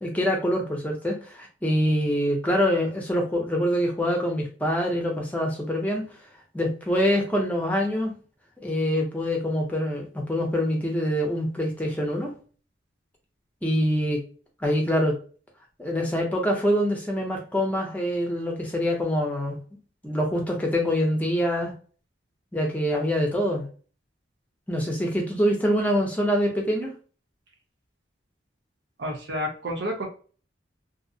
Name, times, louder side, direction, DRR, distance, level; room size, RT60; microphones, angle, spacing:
voice 1, 0.0-6.1 6.5-8.1 8.6-12.3 13.6-14.2 14.6-15.2 15.8-19.6 20.0-21.7 22.5-23.6 24.7-26.9, equal, 10° left, 0 dB, 0.6 m, -25 dB
voice 2, 29.0-30.1, equal, 65° right, 1 dB, 0.7 m, -30 dB
2.6 x 2.0 x 2.6 m, 0.40 s
head